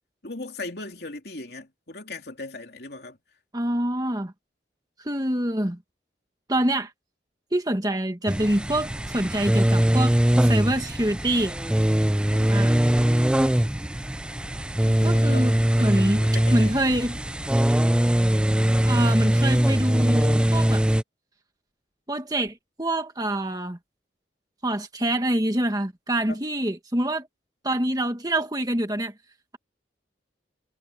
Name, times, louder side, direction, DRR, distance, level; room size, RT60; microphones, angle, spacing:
voice 1, 0.2-3.2 12.3-13.2 14.9-15.5 15.8-17.1 26.3-26.4, left 2 dB, 60° left, 3.4 m, -39 dB
voice 2, 3.5-4.3 5.0-5.8 6.5-6.9 7.5-11.5 12.5-12.7 15.0-17.2 18.8-20.9 22.1-23.8 24.6-27.3 27.6-29.1, right 1 dB, 20° right, 1.7 m, -26 dB
sound 1, 8.3-21.0, right 1 dB, 5° right, 0.4 m, -21 dB
head